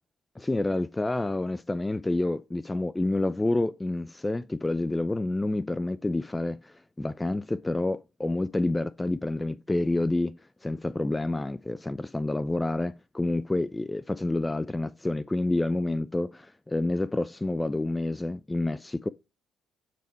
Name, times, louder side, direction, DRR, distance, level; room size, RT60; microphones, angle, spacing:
voice 1, 0.4-19.1, left 2 dB, 15° left, 0.3 m, -28 dB
7.5 x 3.5 x 4.4 m
hypercardioid pair, 50°, 0 cm